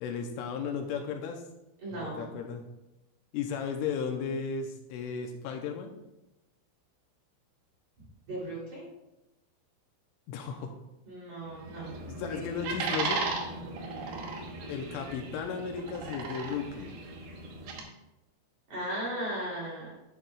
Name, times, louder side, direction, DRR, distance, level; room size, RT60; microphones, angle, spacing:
voice 1, 0.0-1.5 1.9-2.7 3.3-6.0 10.3-10.8 12.1-13.3 14.7-17.0, left 6 dB, 85° left, 4 dB, 3.1 m, -35 dB
voice 2, 1.8-2.3 8.3-8.9 11.1-12.0 12.3-12.5 18.7-19.9, right 1 dB, 40° right, -6 dB, 3.9 m, -37 dB
sound 1, 11.5-17.8, right 3 dB, 70° right, 2.6 m, -36 dB
10.5 x 10.0 x 2.3 m, 0.94 s
omnidirectional pair, 5.8 m